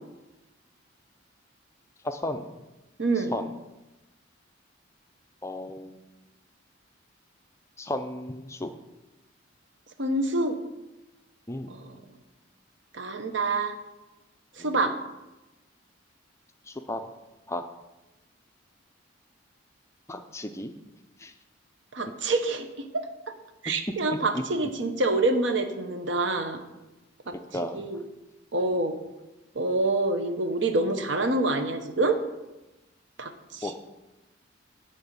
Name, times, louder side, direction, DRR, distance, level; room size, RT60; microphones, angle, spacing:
voice 1, 2.0-2.5 3.3-3.5 5.4-6.0 7.8-8.7 11.5-11.8 14.6-14.8 16.7-17.0 17.5-17.6 20.1-20.7 21.2-21.3 24.3-24.4 27.3-27.9 33.6-33.8, left 1 dB, 15° left, 7 dB, 0.5 m, -34 dB
voice 2, 3.0-3.3 10.0-10.6 11.7-11.8 12.9-13.8 14.6-15.0 21.9-23.1 23.6-26.6 27.3-27.4 27.7-28.0 28.5-29.0 29.5-32.2 33.2-33.7, right 2 dB, 70° right, 7 dB, 0.9 m, -26 dB
10.5 x 3.9 x 7.4 m, 1.0 s
head